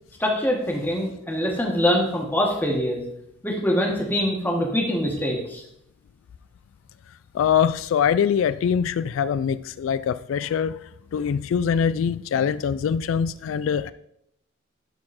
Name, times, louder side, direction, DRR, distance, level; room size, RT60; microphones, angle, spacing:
voice 1, 0.2-3.0 3.4-5.6, equal, 10° left, 0 dB, 1.7 m, -24 dB
voice 2, 7.3-13.9, left 7 dB, 85° left, 16 dB, 0.3 m, -23 dB
12.5 x 4.3 x 4.3 m, 0.75 s
head